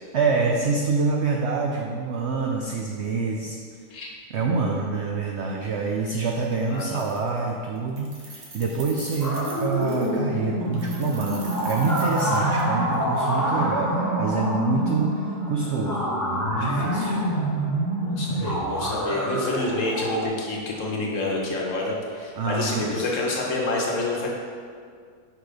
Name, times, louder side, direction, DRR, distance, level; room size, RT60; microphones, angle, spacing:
voice 1, 0.1-3.6 4.3-16.0 16.5-17.2 18.3-18.6 22.4-23.1, right 4 dB, 80° right, 0 dB, 0.6 m, -26 dB
Keys jangling, 6.3-6.4 6.7-7.5 7.8-10.2 10.7-13.0, right 3 dB, 50° right, 1.1 m, -43 dB
voice 2, 6.7-7.0 17.0-17.3 18.0-24.3, left 2 dB, 55° left, -2 dB, 1.2 m, -28 dB
sound 1, 9.2-20.3, equal, 25° left, 0.4 m, -26 dB
5.6 x 3.9 x 4.9 m, 2.1 s
omnidirectional pair, 1.7 m